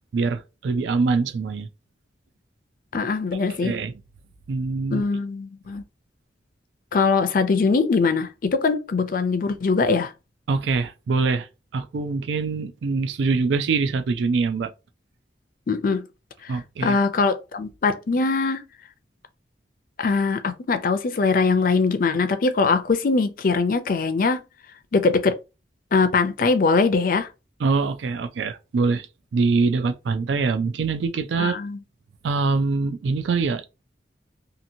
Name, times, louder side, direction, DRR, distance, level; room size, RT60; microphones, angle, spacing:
voice 1, 0.1-1.7 3.5-3.9 4.5-5.0 10.5-11.5 11.7-14.7 16.5-17.0 27.6-29.1 29.3-31.6 32.2-33.7, right 4 dB, 80° right, 0.4 m, -24 dB
voice 2, 2.9-3.7 4.9-5.8 6.9-10.1 15.7-16.0 16.4-18.6 20.0-24.4 24.9-25.4 25.9-27.3 31.4-31.8, left 4 dB, 50° left, 0.4 m, -22 dB
2.8 x 2.6 x 2.6 m
head